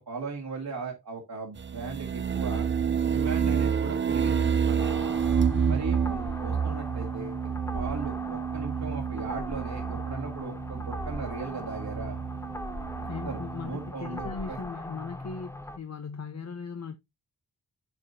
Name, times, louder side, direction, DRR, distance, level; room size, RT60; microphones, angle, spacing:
voice 1, 0.0-2.7 3.1-5.2 5.7-12.2 13.2-14.6, right 4 dB, 70° right, 2.1 m, -38 dB
sound 1, 1.6-13.9, right 7 dB, 30° right, 0.4 m, -29 dB
sound 2, 4.8-15.8, left 1 dB, 5° left, 0.7 m, -40 dB
voice 2, 5.4-5.9 13.1-17.0, left 5 dB, 45° left, 0.7 m, -38 dB
9.0 x 5.0 x 2.7 m
wide cardioid pair, 85°, 37 cm